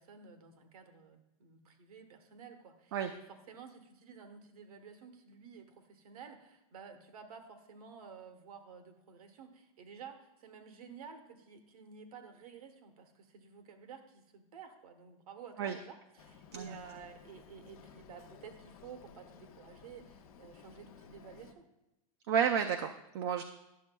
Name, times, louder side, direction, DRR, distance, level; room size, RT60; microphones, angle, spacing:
voice 1, 0.0-21.7, right 6 dB, 85° right, 7 dB, 1.1 m, -52 dB
Boat Water vehicle, 16.2-21.5, left 6 dB, 75° left, 0.8 m, -56 dB
voice 2, 22.3-23.4, right 8 dB, 45° right, 6 dB, 0.4 m, -31 dB
11.0 x 7.0 x 2.2 m, 0.91 s
supercardioid pair, 175°, 18 cm